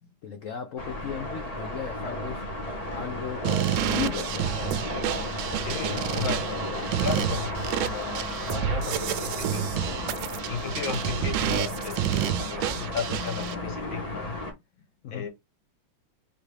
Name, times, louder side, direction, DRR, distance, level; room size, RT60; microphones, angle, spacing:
voice 1, 0.2-2.6 2.9-4.7 15.0-15.3, left 7 dB, 90° left, 0.7 m, -36 dB
sound 1, 0.8-14.5, left 1 dB, 20° left, 1.3 m, -34 dB
sound 2, 3.4-13.5, right 11 dB, 75° right, 1.2 m, -30 dB
voice 2, 5.6-6.6 7.0-9.7 10.4-14.4 15.1-15.3, left 6 dB, 70° left, 2.4 m, -34 dB
4.0 x 3.4 x 3.3 m
omnidirectional pair, 2.2 m